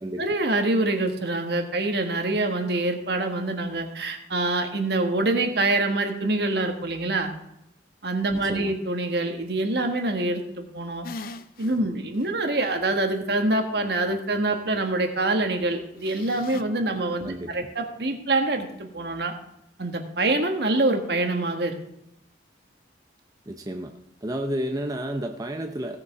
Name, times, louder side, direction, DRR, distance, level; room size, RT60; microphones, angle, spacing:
voice 1, 0.2-7.3 8.0-11.1 11.6-19.3 19.8-21.8, right 2 dB, 60° right, 5 dB, 1.5 m, -25 dB
voice 2, 8.3-8.7 17.2-17.7 23.5-23.9 24.2-26.0, right 1 dB, 20° right, 4 dB, 0.6 m, -31 dB
sound 1, 11.0-11.8 12.2-12.3 16.0-16.6, left 3 dB, 50° left, 0.6 m, -39 dB
16.5 x 6.9 x 4.7 m, 0.83 s
head